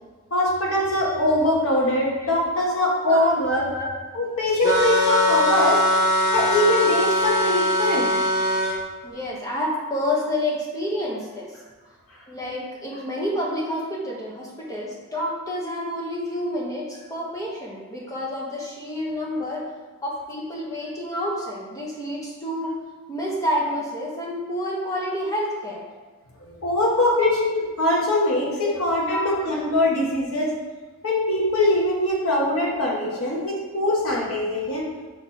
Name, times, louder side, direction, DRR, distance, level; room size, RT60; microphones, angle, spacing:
voice 1, 0.3-3.7 4.1-5.8 6.3-8.1 26.6-30.5 31.0-34.8, left 1 dB, 75° left, -3 dB, 1.5 m, -22 dB
voice 2, 2.2-2.7 3.1-3.2 3.5-3.9 5.8-6.0 9.0-11.5 12.3-19.6 20.0-22.8 23.1-25.9 27.1-27.2 28.6-28.7 29.1-29.3 33.1-33.2, left 1 dB, 15° left, -4 dB, 1.1 m, -29 dB
sound 1, 4.6-8.7, left 1 dB, 30° left, 1.6 m, -21 dB
5.4 x 4.7 x 4.2 m, 1.3 s
head